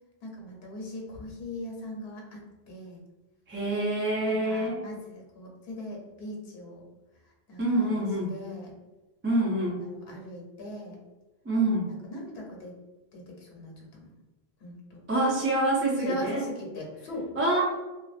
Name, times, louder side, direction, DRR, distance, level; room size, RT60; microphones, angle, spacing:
voice 1, 0.2-3.0 4.2-6.9 7.2-8.8 9.8-11.0 12.0-12.8 13.1-14.1 14.6-15.0 16.0-17.3, left 1 dB, 75° left, -2 dB, 0.9 m, -40 dB
voice 2, 3.5-4.8 7.6-8.3 9.2-9.8 11.4-11.9 15.1-16.4 17.4-17.6, right 1 dB, 20° right, -4 dB, 0.3 m, -26 dB
2.6 x 2.1 x 2.4 m, 1.2 s
omnidirectional pair, 1.1 m